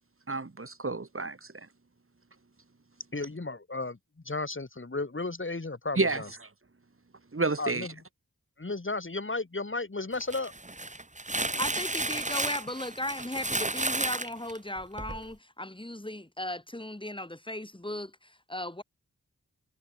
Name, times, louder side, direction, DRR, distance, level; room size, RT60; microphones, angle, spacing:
voice 1, 0.3-1.7 6.0-6.2 7.3-7.9, right 3 dB, 45° right, 4.5 m, -30 dB
voice 2, 3.1-4.0 4.2-6.3 7.6-7.9 8.6-10.5, left 3 dB, 40° left, 7.8 m, -34 dB
sound 1, 10.1-15.2, right 2 dB, 25° right, 2.7 m, -32 dB
voice 3, 11.3-18.8, left 1 dB, 15° left, 4.9 m, -37 dB
wide cardioid pair, 80°, 30 cm